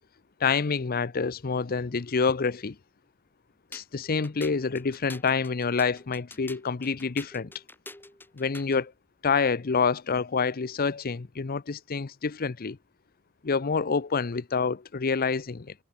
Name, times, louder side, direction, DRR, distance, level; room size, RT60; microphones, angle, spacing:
voice 1, 0.4-2.8 3.7-7.5 8.3-8.9 9.2-12.8 13.4-15.7, left 5 dB, 40° left, 0.6 m, -27 dB
sound 1, 3.7-8.9, left 2 dB, 10° left, 3.5 m, -47 dB
head